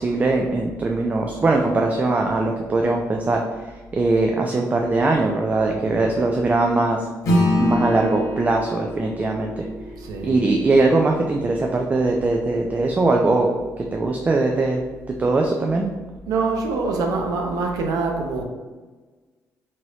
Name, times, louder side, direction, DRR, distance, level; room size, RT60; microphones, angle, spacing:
voice 1, 0.0-7.1 7.6-9.7 10.2-13.5 13.8-14.8 15.1-15.8, right 2 dB, 25° right, 1 dB, 0.3 m, -21 dB
voice 2, 5.6-6.1 10.0-10.4 16.3-18.4, right 3 dB, 80° right, 2 dB, 0.6 m, -25 dB
Acoustic guitar / Strum, 7.2-12.0, left 1 dB, 65° left, 0.8 m, -25 dB
2.9 x 2.6 x 3.1 m, 1.3 s
cardioid pair, 95°, 6 cm